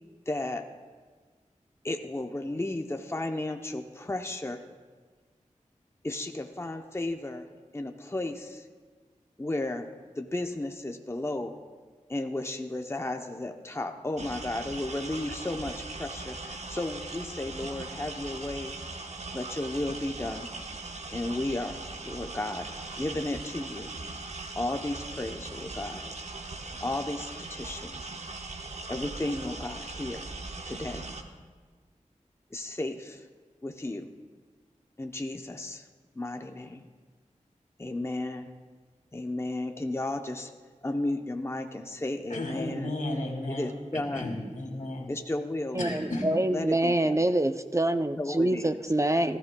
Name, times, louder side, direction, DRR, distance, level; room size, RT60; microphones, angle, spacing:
voice 1, 0.3-0.7 1.8-4.7 6.0-7.5 7.7-8.7 9.4-11.6 12.1-18.8 19.3-20.5 21.1-21.8 22.0-23.9 24.6-26.1 26.8-28.1 28.9-30.3 30.7-31.1 32.5-33.3 33.6-34.1 35.0-35.9 36.1-36.9 37.8-38.5 39.1-40.5 40.8-42.9 43.5-44.4 45.1-46.0 46.5-47.3 48.2-48.7, left 2 dB, 20° left, 5 dB, 0.7 m, -34 dB
sound 1, 14.2-31.2, right 3 dB, 55° right, 1.1 m, -40 dB
voice 2, 42.3-45.1 45.8-46.2, left 1 dB, 75° left, 1 dB, 2.3 m, -34 dB
voice 3, 45.7-49.4, right 1 dB, 20° right, 9 dB, 0.5 m, -26 dB
18.5 x 13.5 x 2.3 m, 1.5 s
cardioid pair, 40°, 13 cm